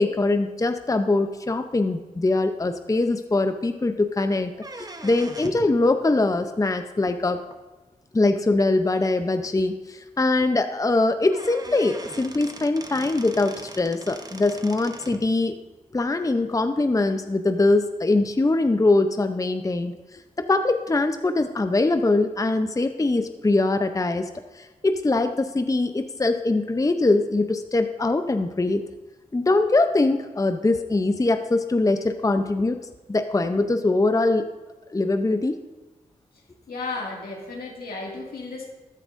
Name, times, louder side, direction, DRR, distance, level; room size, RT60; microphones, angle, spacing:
voice 1, 0.0-4.5 4.8-7.4 8.1-15.6 15.9-24.3 24.5-28.8 29.3-32.8 33.1-34.5 34.9-35.6, left 2 dB, 20° left, 8 dB, 0.6 m, -22 dB
sound 1, 4.5-5.7 7.5-7.6 8.5-8.6 9.0-9.1 9.4-9.5 10.9-11.0 11.3-15.3, right 2 dB, 25° right, 0.9 m, -40 dB
voice 2, 36.7-38.6, left 3 dB, 80° left, -2 dB, 2.2 m, -33 dB
14.0 x 9.9 x 2.6 m, 1.2 s
cardioid pair, 45°, 15 cm